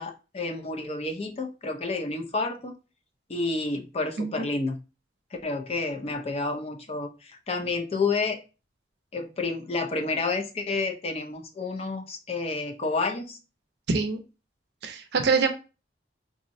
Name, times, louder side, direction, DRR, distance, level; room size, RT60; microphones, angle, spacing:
voice 1, 0.0-2.8 3.3-4.8 5.4-8.4 9.1-13.4, left 3 dB, 30° left, 5 dB, 0.4 m, -30 dB
voice 2, 13.9-14.2 14.8-15.5, right 4 dB, 60° right, 6 dB, 0.5 m, -25 dB
3.5 x 2.0 x 2.5 m, 0.31 s
head